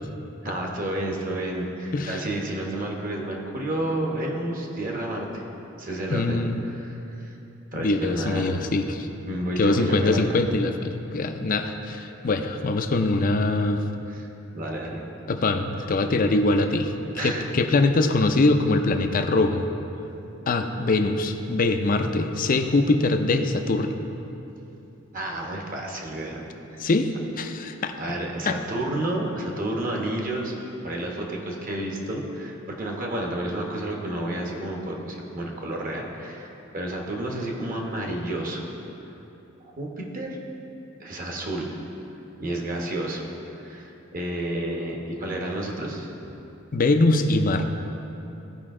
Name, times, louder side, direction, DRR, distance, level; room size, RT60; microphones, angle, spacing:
voice 1, 0.4-5.4 5.8-7.4 7.7-8.5 9.3-10.4 14.1-14.3 14.5-15.0 17.2-17.4 25.1-26.4 26.7-26.9 28.0-30.6 30.8-38.7 39.6-40.4 41.0-41.8 42.4-43.3 43.6-46.1, right 1 dB, 45° right, 0 dB, 1.2 m, -30 dB
voice 2, 6.1-6.6 7.7-9.1 9.6-13.8 15.3-19.7 20.5-23.9 26.8-27.9 28.5-28.6 46.7-47.6, left 2 dB, 45° left, 7 dB, 0.5 m, -23 dB
15.0 x 5.1 x 3.7 m, 2.9 s
head